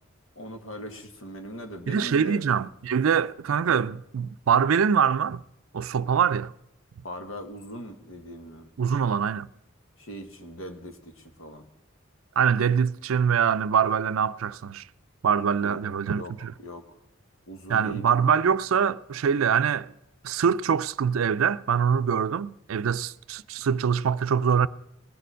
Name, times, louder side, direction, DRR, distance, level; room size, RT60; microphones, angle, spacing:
voice 1, 0.3-2.4 7.0-8.7 10.0-11.7 15.6-15.8 16.1-16.9 17.5-18.0, equal, 80° left, 1.5 m, -40 dB
voice 2, 1.9-5.4 5.7-6.5 8.8-9.5 12.4-14.8 15.2-16.5 17.7-19.9 20.2-24.7, right 7 dB, 85° right, 0.4 m, -24 dB
20.5 x 6.9 x 6.2 m
head